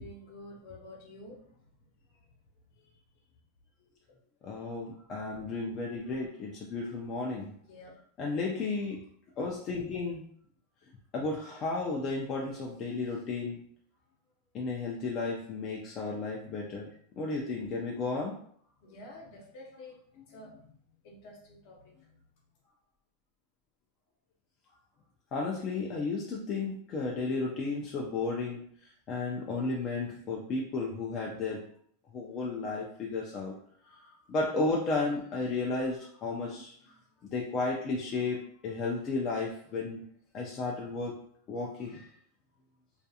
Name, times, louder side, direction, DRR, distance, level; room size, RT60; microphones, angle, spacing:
voice 1, 0.0-1.6 2.8-2.9 7.5-8.0 18.8-20.8 21.0-22.1, left 1 dB, 55° left, -1 dB, 0.8 m, -50 dB
voice 2, 4.4-7.5 8.2-9.0 9.4-10.2 11.1-13.6 14.5-16.9 17.2-18.3 25.3-31.6 32.1-33.5 33.9-34.0 34.3-36.7 37.2-40.0 40.3-41.1 41.5-42.1, left 3 dB, 35° left, -2 dB, 0.4 m, -33 dB
2.4 x 2.3 x 2.7 m, 0.62 s
supercardioid pair, 145°, 0 cm